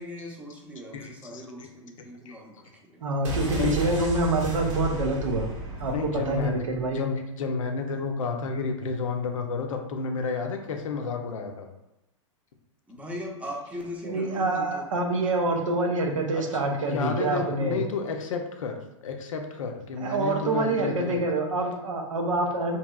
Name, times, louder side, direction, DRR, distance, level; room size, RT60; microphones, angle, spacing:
voice 1, 0.0-3.0 12.9-14.8, left 1 dB, 10° right, -2 dB, 0.6 m, -39 dB
voice 2, 0.9-1.7 2.3-2.4 3.6-3.8 5.9-6.5 6.9-11.7 16.3-16.4 16.8-18.8 19.0-21.2, left 4 dB, 85° left, 4 dB, 0.5 m, -31 dB
voice 3, 3.0-5.5 5.8-7.1 14.0-17.9 20.0-22.8, right 2 dB, 90° right, 3 dB, 0.6 m, -26 dB
sound 1, 3.2-7.0 7.3-7.4, right 1 dB, 65° right, 1.0 m, -33 dB
2.9 x 2.9 x 2.3 m, 0.87 s
hypercardioid pair, 115°, 16 cm